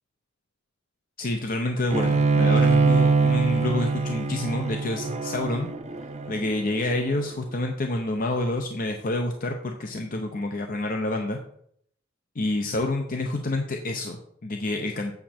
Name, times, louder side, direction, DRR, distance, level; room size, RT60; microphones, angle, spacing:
voice 1, 1.2-5.7 6.3-11.4 12.4-15.1, left 2 dB, 45° left, 4 dB, 0.7 m, -28 dB
Bowed string instrument, 1.9-7.2, right 4 dB, 35° right, 0.7 m, -23 dB
8.2 x 6.2 x 4.3 m, 0.68 s
head